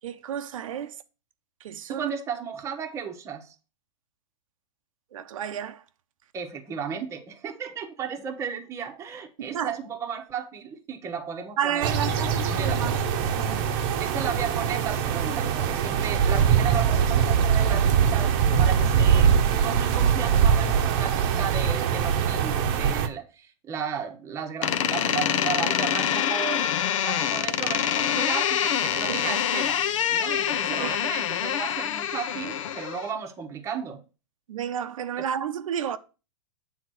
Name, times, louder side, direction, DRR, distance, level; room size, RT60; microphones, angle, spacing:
voice 1, 0.0-1.0 1.6-2.1 5.1-5.8 9.4-9.7 11.6-12.9 13.4-13.7 29.1-29.2 30.8-30.9 34.5-36.0, right 9 dB, 90° right, 0.7 m, -31 dB
voice 2, 1.9-3.5 6.3-12.8 14.0-19.4 19.6-26.7 27.0-29.8 30.1-34.0 35.2-35.3, right 7 dB, 15° right, 1.0 m, -34 dB
sound 1, 11.8-23.1, right 7 dB, 45° right, 0.8 m, -22 dB
Door, 24.6-33.1, left 9 dB, 75° left, 0.7 m, -26 dB
7.9 x 3.6 x 6.1 m
supercardioid pair, 155°, 17 cm